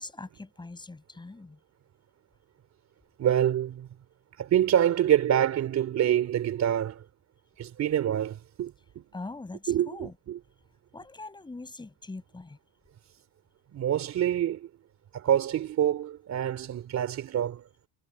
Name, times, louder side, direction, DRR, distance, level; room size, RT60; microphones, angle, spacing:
voice 1, 0.0-1.6 9.1-10.1 10.9-12.6, left 3 dB, 10° left, 5.8 m, -42 dB
voice 2, 3.2-3.9 4.4-7.0 7.6-9.0 9.7-10.4 13.7-14.7 15.1-17.6, right 10 dB, 35° right, 3.2 m, -26 dB
cardioid pair, 170°, 46 cm